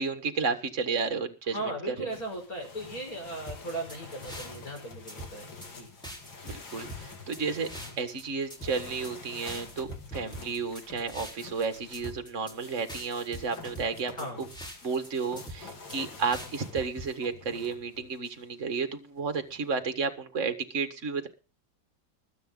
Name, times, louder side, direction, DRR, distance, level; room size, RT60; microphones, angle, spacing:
voice 1, 0.0-1.6 1.9-2.1 6.4-7.7 8.0-14.1 14.8-21.3, right 5 dB, 40° right, 8 dB, 1.8 m, -32 dB
voice 2, 1.5-5.9 14.1-14.4, right 1 dB, 50° left, 2 dB, 6.2 m, -37 dB
sound 1, 2.1-18.4 19.2-19.8, left 4 dB, 80° left, 3.0 m, -47 dB
sound 2, 3.5-4.8 5.1-5.7 6.0-8.2 8.5-9.1 9.5-11.6 11.9-12.5 12.9-15.1 15.4-16.0 16.3-17.1, right 1 dB, ahead, 4.0 m, -43 dB
21.0 x 8.3 x 3.9 m, 0.33 s
omnidirectional pair, 2.0 m